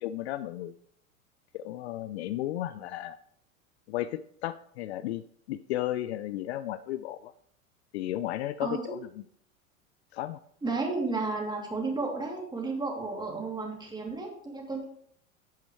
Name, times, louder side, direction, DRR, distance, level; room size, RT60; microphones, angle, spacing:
voice 1, 0.0-0.8 1.5-3.2 3.9-7.3 7.9-9.0 10.1-10.4, left 13 dB, 50° left, 14 dB, 0.5 m, -34 dB
voice 2, 8.6-9.0 10.6-14.8, right 3 dB, 10° right, 0 dB, 2.8 m, -33 dB
11.0 x 9.3 x 3.2 m, 0.64 s
figure-of-eight pair, 85°, 42 cm